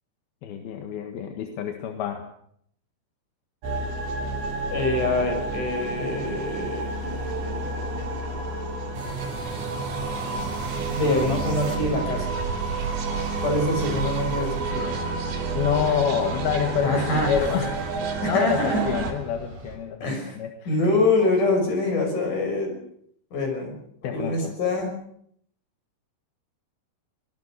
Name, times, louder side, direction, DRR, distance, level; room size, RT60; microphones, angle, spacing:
voice 1, 0.4-2.3 15.5-17.8 18.2-20.1 20.4-20.8 24.0-24.5, left 8 dB, 60° left, 5 dB, 3.0 m, -27 dB
sound 1, 3.6-19.1, right 3 dB, 55° right, 4.8 m, -30 dB
voice 2, 4.7-6.9 10.9-12.4 13.4-15.0 16.8-17.3 18.2-18.8 20.0-20.4 20.7-22.8 23.3-23.8 24.1-24.9, left 2 dB, 40° left, 3 dB, 7.3 m, -25 dB
sound 2, 8.9-19.8, right 2 dB, 40° right, 5.5 m, -38 dB
23.5 x 20.0 x 6.6 m, 0.67 s
omnidirectional pair, 5.7 m